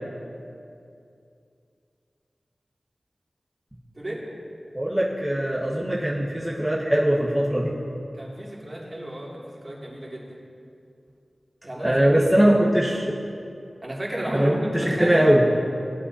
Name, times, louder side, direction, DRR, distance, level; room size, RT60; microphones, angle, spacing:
voice 1, 4.7-7.7 11.8-13.2 14.3-15.4, right 1 dB, ahead, -6 dB, 1.3 m, -21 dB
voice 2, 8.2-10.3 11.6-12.1 13.8-15.2, right 1 dB, 35° right, -5 dB, 2.4 m, -32 dB
17.5 x 8.4 x 2.8 m, 2.5 s
wide cardioid pair, 55°, 0 cm